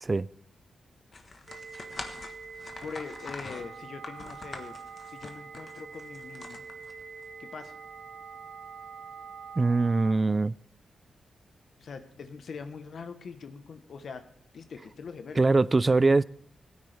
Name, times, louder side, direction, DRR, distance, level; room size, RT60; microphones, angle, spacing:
sound 1, 1.1-7.2, left 3 dB, 45° left, 1.4 m, -44 dB
sound 2, 1.5-10.1, right 5 dB, 85° right, 1.2 m, -45 dB
voice 1, 2.8-4.8 5.1-6.6 7.4-7.7 11.8-14.2 14.5-15.5 15.8-16.0, left 5 dB, 70° left, 1.1 m, -42 dB
voice 2, 9.6-10.6 15.4-16.2, right 3 dB, 30° right, 0.3 m, -22 dB
17.0 x 9.6 x 3.5 m
cardioid pair, 90°, 0 cm